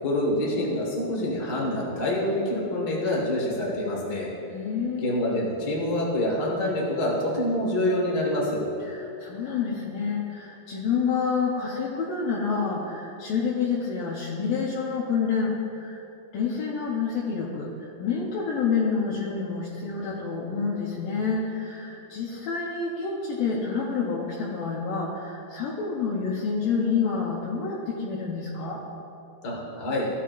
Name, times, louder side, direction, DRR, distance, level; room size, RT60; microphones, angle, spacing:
voice 1, 0.0-4.3 5.0-8.6 29.4-30.1, left 1 dB, 45° left, -3 dB, 1.3 m, -26 dB
voice 2, 4.5-5.0 8.8-16.0 16.3-28.8, left 5 dB, 70° left, -5 dB, 2.4 m, -28 dB
15.5 x 8.4 x 2.5 m, 2.7 s
omnidirectional pair, 4.5 m